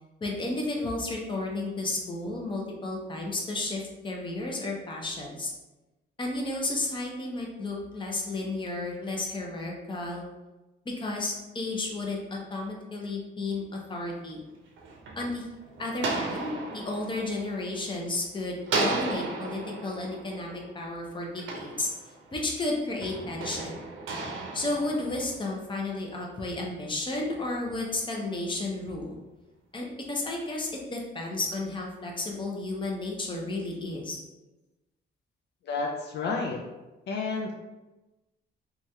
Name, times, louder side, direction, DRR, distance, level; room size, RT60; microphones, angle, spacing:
voice 1, 0.2-5.5 6.2-10.2 10.9-14.4 15.2-15.4 15.8-21.9 22.3-23.8 24.5-29.2 29.7-34.2, left 2 dB, 25° left, -1 dB, 0.7 m, -32 dB
sound 1, 14.5-18.2 18.6-22.4 23.0-25.7, right 3 dB, 75° right, 0.6 m, -35 dB
voice 2, 35.6-36.6 37.1-37.5, left 4 dB, 60° left, 0 dB, 0.4 m, -30 dB
3.0 x 2.3 x 2.7 m, 1.1 s
cardioid pair, 90°, 20 cm